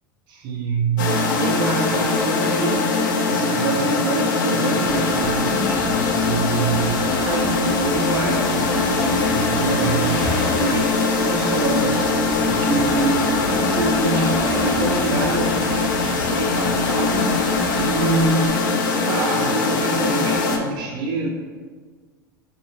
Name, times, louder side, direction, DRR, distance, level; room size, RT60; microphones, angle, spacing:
voice 1, 0.3-2.9 3.2-21.3, right 3 dB, 40° right, -2 dB, 0.5 m, -26 dB
sound 1, 1.0-20.6, left 3 dB, 60° left, 0.5 m, -21 dB
Waves surf, 4.8-18.5, left 1 dB, 40° left, 1.0 m, -32 dB
4.6 x 2.8 x 3.1 m, 1.5 s
figure-of-eight pair, 80°, 12 cm